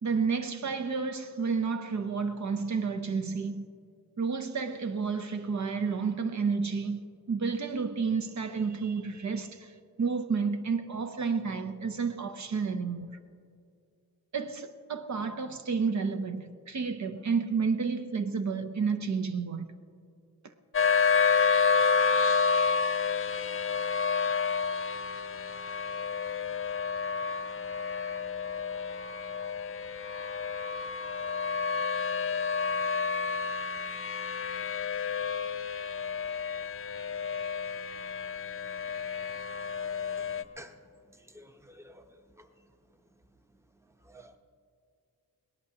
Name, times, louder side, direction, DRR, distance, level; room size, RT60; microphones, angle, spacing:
voice 1, 0.0-3.7 4.2-7.0 7.3-9.7 10.0-13.2 14.3-19.7, right 5 dB, 50° right, 0.7 m, -31 dB
sound 1, 20.7-40.4, left 5 dB, 35° left, 0.5 m, -29 dB
voice 2, 41.3-42.1 42.4-42.5 44.1-44.4, equal, 5° right, 0.8 m, -50 dB
22.5 x 18.0 x 2.9 m
wide cardioid pair, 125°, 36 cm